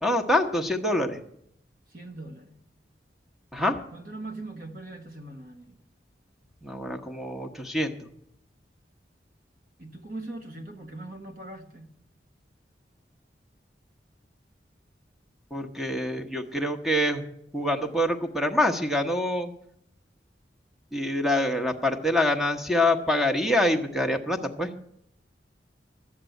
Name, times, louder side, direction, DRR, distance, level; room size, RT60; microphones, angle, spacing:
voice 1, 0.0-1.2 3.5-3.8 6.6-7.9 15.5-17.2 17.5-19.5 20.9-24.7, left 1 dB, ahead, 1.0 m, -25 dB
voice 2, 1.9-2.6 3.9-5.8 9.8-11.9, right 2 dB, 55° right, 1.4 m, -41 dB
13.0 x 7.5 x 9.1 m
head